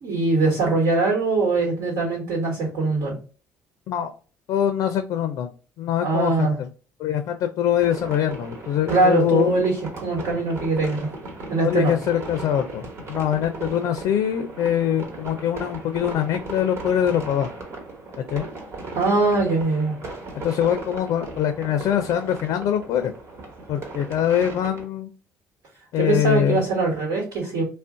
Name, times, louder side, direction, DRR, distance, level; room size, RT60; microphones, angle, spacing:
voice 1, 0.0-3.2 6.0-6.6 8.9-11.1 11.5-12.0 18.9-20.0 26.0-27.6, right 3 dB, 70° right, -1 dB, 1.3 m, -22 dB
voice 2, 4.5-5.5 5.8-6.7 7.0-9.6 11.6-17.5 18.3-18.5 20.4-23.1 23.7-25.1 25.9-26.6, left 10 dB, 70° left, 8 dB, 0.4 m, -23 dB
sound 1, 7.8-24.8, right 3 dB, 50° right, 1.1 m, -37 dB
2.5 x 2.1 x 3.6 m, 0.37 s
supercardioid pair, 90°, 6 cm